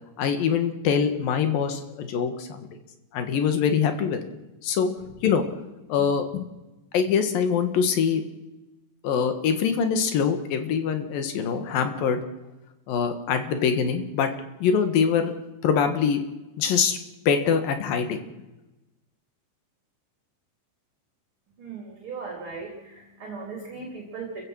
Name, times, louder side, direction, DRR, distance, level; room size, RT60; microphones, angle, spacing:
voice 1, 0.2-2.7 3.1-4.3 4.6-4.9 5.2-5.4 5.9-6.5 6.9-8.2 9.0-12.2 12.9-14.3 14.6-15.3 15.6-16.2 16.6-17.0 17.3-18.2, left 7 dB, 80° left, 8 dB, 3.4 m, -24 dB
voice 2, 21.6-24.4, right 4 dB, 40° right, 0 dB, 3.6 m, -37 dB
29.0 x 15.5 x 6.4 m, 1.1 s
omnidirectional pair, 4.0 m